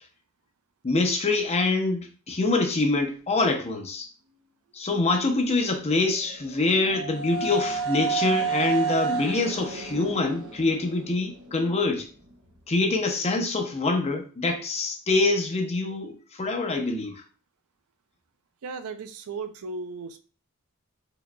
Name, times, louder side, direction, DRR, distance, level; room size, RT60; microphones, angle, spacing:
voice 1, 0.8-4.1 4.7-12.1 12.7-17.2, left 3 dB, 30° left, 4 dB, 0.7 m, -25 dB
sound 1, 5.9-11.8, right 5 dB, 65° right, 1.0 m, -30 dB
voice 2, 18.6-20.2, right 4 dB, 85° right, 9 dB, 0.5 m, -36 dB
4.8 x 3.1 x 2.2 m, 0.37 s
head